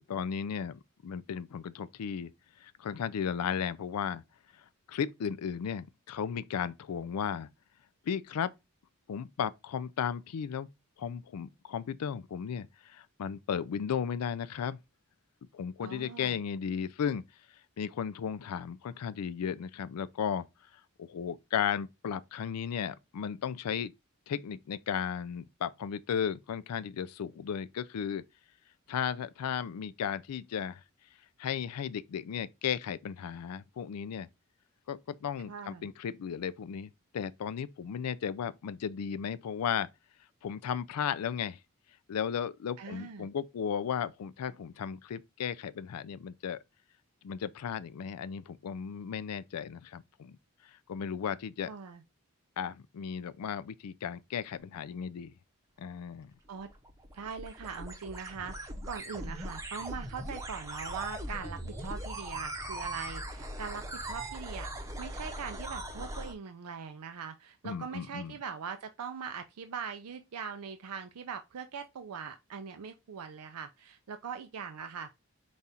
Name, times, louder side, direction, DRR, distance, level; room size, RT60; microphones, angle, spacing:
voice 1, 0.0-2.3 2.6-4.2 4.5-7.5 8.1-8.5 9.1-10.7 11.0-14.8 15.5-17.2 17.8-20.5 21.0-23.9 24.3-28.2 28.9-30.8 31.4-34.3 34.9-39.9 40.4-41.6 42.1-46.6 47.2-50.4 50.7-51.7 52.6-55.3 55.8-56.3 67.6-68.4, left 7 dB, 90° left, 0.4 m, -35 dB
voice 2, 15.8-16.4 35.5-35.9 42.8-43.3 51.7-52.0 56.5-56.7 57.1-75.1, right 6 dB, 90° right, 0.5 m, -41 dB
sound 1, 56.5-66.3, right 1 dB, 15° right, 0.7 m, -40 dB
5.2 x 2.4 x 4.2 m
head